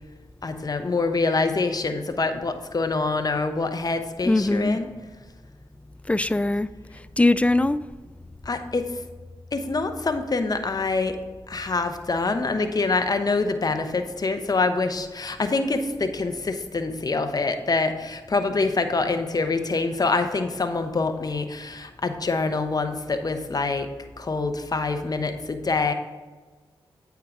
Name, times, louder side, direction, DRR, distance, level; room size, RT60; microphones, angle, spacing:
voice 1, 0.4-4.9 8.4-9.0 9.5-11.2 11.5-23.9 24.2-25.9, left 3 dB, 40° left, 0.9 m, -25 dB
voice 2, 4.3-4.8 6.1-6.7 7.2-7.8, left 2 dB, 10° left, 0.3 m, -21 dB
8.6 x 4.6 x 3.7 m
supercardioid pair, 40°, 10 cm